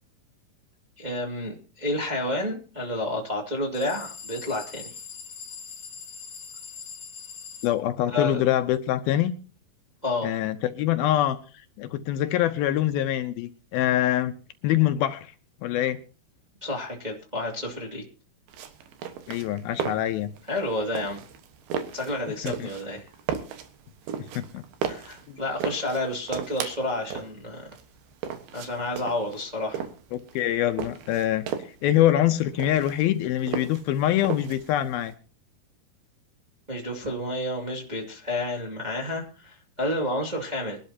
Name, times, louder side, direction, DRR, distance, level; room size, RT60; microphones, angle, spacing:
voice 1, 1.0-4.8 8.1-8.4 10.0-10.3 16.6-18.0 20.5-21.2 21.9-23.1 24.9-27.7 28.5-29.8 36.7-40.8, left 1 dB, 15° right, -1 dB, 1.6 m, -30 dB
sound 1, 3.7-7.7, left 6 dB, 50° left, 1.8 m, -42 dB
voice 2, 7.6-9.3 10.2-11.4 11.8-14.3 14.6-15.3 15.6-16.0 19.3-20.3 22.4-22.7 24.4-24.6 30.1-31.5 31.8-35.1, left 12 dB, 75° left, 9 dB, 2.5 m, -24 dB
sound 2, 18.5-35.1, right 8 dB, 75° right, 3.2 m, -36 dB
24.0 x 12.0 x 2.8 m, 0.36 s
omnidirectional pair, 4.6 m